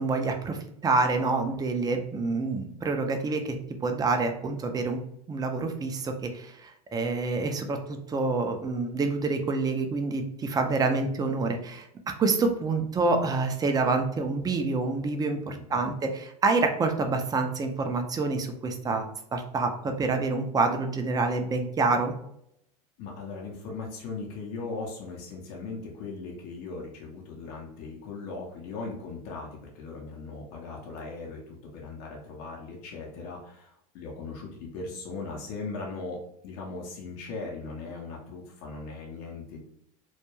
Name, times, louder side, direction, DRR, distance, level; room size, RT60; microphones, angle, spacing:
voice 1, 0.0-3.6 3.8-5.0 5.3-11.9 12.2-19.1 19.3-22.1, right 3 dB, 20° right, 5 dB, 0.4 m, -27 dB
voice 2, 15.5-15.9 23.0-39.6, left 3 dB, 60° left, -1 dB, 0.7 m, -39 dB
2.3 x 2.1 x 3.0 m, 0.74 s
hypercardioid pair, 90°, 20 cm